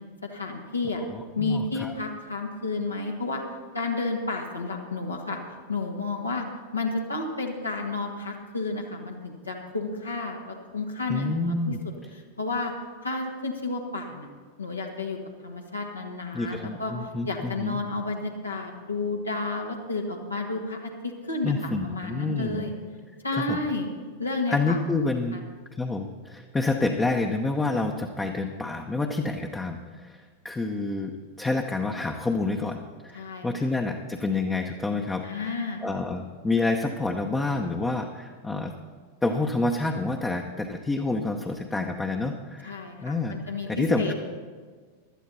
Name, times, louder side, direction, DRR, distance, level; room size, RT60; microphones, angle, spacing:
voice 1, 0.2-1.0 1.3-3.4 3.7-5.4 5.7-6.4 6.7-11.7 12.4-12.7 13.0-14.3 14.6-15.2 15.4-16.9 17.3-22.7 23.2-23.9 24.2-24.8 25.3-25.4 33.1-33.7 35.2-35.9 42.6-44.1, left 3 dB, 80° left, 0 dB, 1.6 m, -31 dB
voice 2, 1.1-1.9 11.1-11.8 16.3-17.8 21.4-22.7 23.3-23.6 24.5-25.4 25.7-31.1 31.4-38.7 39.2-42.8 43.0-43.4 43.7-44.1, left 3 dB, 10° left, 2 dB, 0.8 m, -28 dB
16.5 x 12.0 x 4.1 m, 1.6 s
figure-of-eight pair, 90°, 0 cm